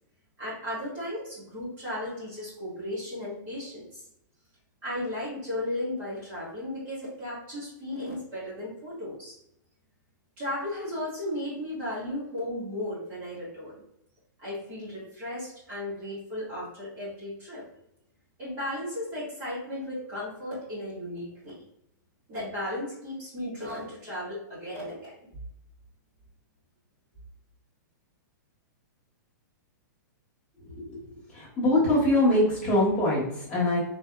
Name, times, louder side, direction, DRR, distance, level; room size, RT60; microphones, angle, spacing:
voice 1, 0.4-4.0 4.8-9.3 10.4-13.8 14.4-17.6 18.4-21.6 22.3-25.1, left 1 dB, 20° right, -9 dB, 1.4 m, -35 dB
voice 2, 31.3-33.8, left 1 dB, 10° left, -8 dB, 1.1 m, -23 dB
3.3 x 2.5 x 2.2 m, 0.80 s
hypercardioid pair, 175°, 11 cm